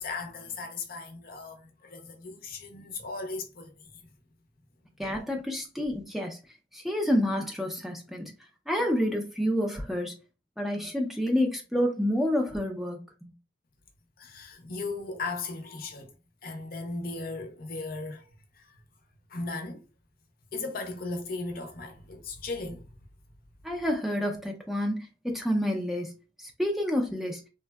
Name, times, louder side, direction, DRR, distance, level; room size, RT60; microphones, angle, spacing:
voice 1, 0.0-3.8 14.2-16.1 16.4-18.3 18.5-18.7 19.3-19.8 20.5-22.9, left 3 dB, 50° left, 0.6 m, -37 dB
voice 2, 5.0-6.4 6.7-8.3 8.7-10.2 10.6-13.3 23.6-26.2 26.4-27.4, equal, ahead, 0.4 m, -29 dB
3.4 x 2.1 x 2.2 m
head